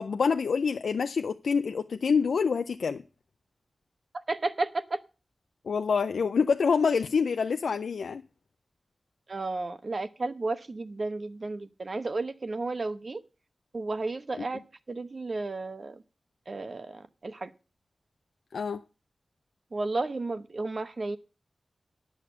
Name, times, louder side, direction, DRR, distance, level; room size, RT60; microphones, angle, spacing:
voice 1, 0.0-3.0 5.7-8.2 14.4-14.5 18.5-18.8, left 5 dB, 85° left, 8 dB, 0.5 m, -26 dB
voice 2, 4.1-5.0 9.3-13.2 13.7-14.6 14.9-16.0 16.5-17.5 19.7-21.2, right 3 dB, 55° right, 10 dB, 1.0 m, -33 dB
11.0 x 6.6 x 6.7 m, 0.33 s
cardioid pair, 55°, 0 cm